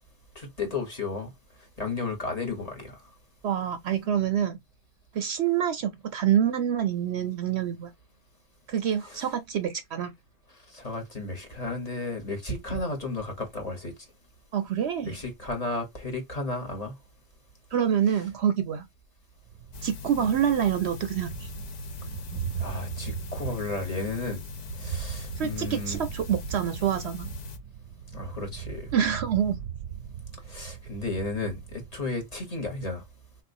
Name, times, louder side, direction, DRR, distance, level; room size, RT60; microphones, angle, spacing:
voice 1, 0.3-1.3 1.8-3.0 9.1-9.2 10.7-13.9 15.0-16.9 20.2-20.3 22.6-24.4 24.8-26.0 28.1-28.9 30.5-33.0, left 3 dB, 30° left, 1.2 m, -33 dB
voice 2, 3.4-4.6 5.1-7.9 8.7-10.1 14.5-15.2 17.7-18.8 19.8-21.5 25.4-27.3 28.9-29.6, right 9 dB, 65° right, 0.8 m, -26 dB
Thunder, 19.4-32.1, right 8 dB, 90° right, 1.0 m, -39 dB
sound 1, 19.7-27.6, left 6 dB, 55° left, 0.5 m, -41 dB
3.7 x 2.5 x 2.6 m
omnidirectional pair, 1.3 m